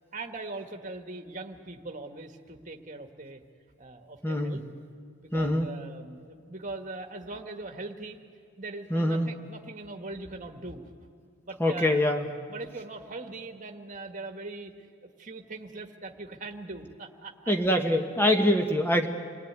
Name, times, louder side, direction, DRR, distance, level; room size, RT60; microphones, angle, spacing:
voice 1, 0.1-3.4 3.8-4.6 5.2-8.2 8.6-10.9 11.4-12.1 12.5-14.7 15.2-17.5 18.0-18.4, right 3 dB, 35° right, 4 dB, 1.6 m, -41 dB
voice 2, 4.2-4.6 5.3-5.7 8.9-9.3 11.6-12.2 17.5-19.1, left 1 dB, 10° left, 4 dB, 1.5 m, -24 dB
28.5 x 19.0 x 9.6 m, 2.2 s
head